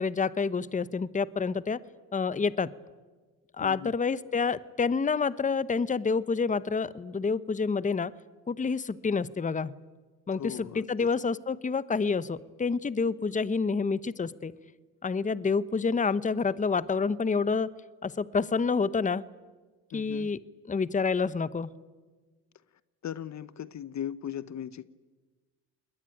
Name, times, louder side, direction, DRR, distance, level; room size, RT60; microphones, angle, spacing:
voice 1, 0.0-1.8 2.1-2.7 3.6-8.1 8.5-9.7 10.3-14.5 15.0-17.7 18.0-19.2 19.9-20.4 20.7-21.7, left 5 dB, 20° left, 1.0 m, -28 dB
voice 2, 3.6-3.9 10.3-11.1 19.9-20.3 23.0-24.8, left 10 dB, 45° left, 1.0 m, -38 dB
28.0 x 21.0 x 9.2 m
supercardioid pair, 75°, 39 cm